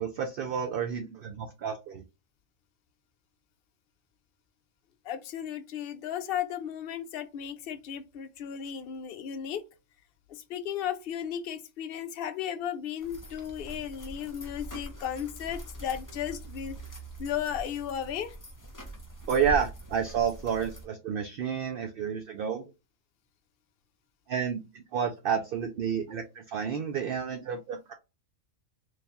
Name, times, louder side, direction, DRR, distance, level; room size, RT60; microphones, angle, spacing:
voice 1, 0.0-2.0 19.3-22.6 24.3-27.9, right 7 dB, 65° right, 0.6 m, -30 dB
voice 2, 5.0-9.6 10.3-16.8 17.2-18.4, left 9 dB, 60° left, 0.6 m, -35 dB
sound 1, 13.0-20.9, right 1 dB, 20° left, 0.5 m, -42 dB
3.2 x 2.3 x 4.0 m
omnidirectional pair, 1.4 m